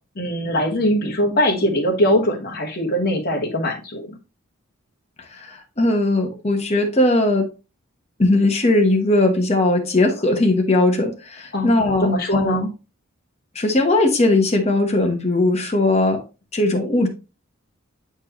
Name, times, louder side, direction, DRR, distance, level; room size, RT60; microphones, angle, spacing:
voice 1, 0.1-4.1 11.5-11.7 12.0-12.7, equal, 45° left, 1.4 m, -21 dB
voice 2, 5.3-7.5 8.2-12.6 13.5-16.2 16.5-17.1, left 2 dB, 30° left, 1.1 m, -19 dB
7.8 x 4.5 x 2.9 m
head